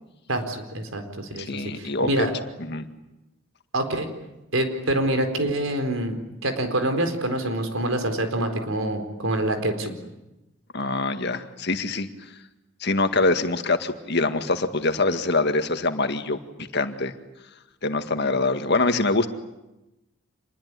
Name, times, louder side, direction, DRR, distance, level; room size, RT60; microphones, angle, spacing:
voice 1, 0.3-2.3 3.7-4.1 4.5-6.1 6.4-9.9, right 1 dB, 75° right, 6 dB, 4.4 m, -26 dB
voice 2, 1.4-2.1 2.6-2.9 10.7-12.1 12.8-16.4 16.7-17.1 17.8-19.3, left 3 dB, 55° left, 8 dB, 1.9 m, -24 dB
27.5 x 21.0 x 9.9 m, 0.97 s
head